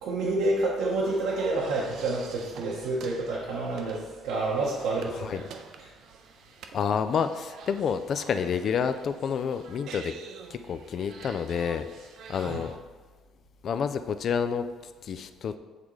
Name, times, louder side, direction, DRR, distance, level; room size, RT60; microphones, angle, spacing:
voice 1, 0.0-5.4 5.8-5.9 12.3-12.6, right 2 dB, 90° right, -5 dB, 0.9 m, -29 dB
sound 1, 0.8-12.8, right 6 dB, 60° right, 0.4 m, -47 dB
voice 2, 6.7-10.1 10.5-11.9 12.3-12.8 13.6-14.7 15.0-15.6, left 7 dB, 45° left, 10 dB, 0.3 m, -29 dB
8.2 x 3.7 x 3.1 m, 1.3 s
cardioid pair, 155°, 0 cm